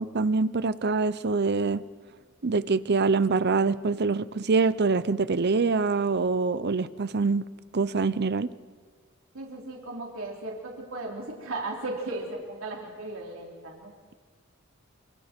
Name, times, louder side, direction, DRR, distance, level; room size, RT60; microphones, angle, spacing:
voice 1, 0.0-1.8 2.4-7.5 7.7-8.5, right 4 dB, 55° right, 16 dB, 0.7 m, -25 dB
voice 2, 9.3-13.9, right 2 dB, 80° right, -1 dB, 3.6 m, -36 dB
28.0 x 26.0 x 4.5 m, 1.5 s
head